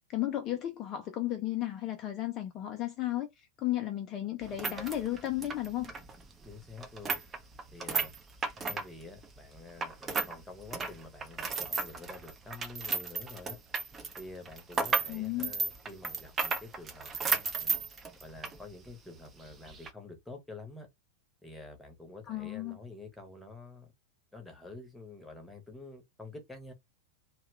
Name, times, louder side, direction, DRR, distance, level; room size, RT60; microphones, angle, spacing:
voice 1, 0.1-3.3 3.6-5.9 15.1-15.5 22.3-22.8, left 14 dB, 35° left, 0.5 m, -34 dB
sound 1, 4.4-10.4 10.6-18.6 18.9-19.0 19.7-19.9, right 5 dB, 20° right, 0.6 m, -34 dB
voice 2, 6.4-7.2 7.7-8.1 8.6-13.6 14.2-17.8 18.2-20.9 21.4-23.9 24.3-26.7, left 3 dB, 5° left, 1.0 m, -48 dB
2.7 x 2.3 x 3.1 m
figure-of-eight pair, 90°, 0 cm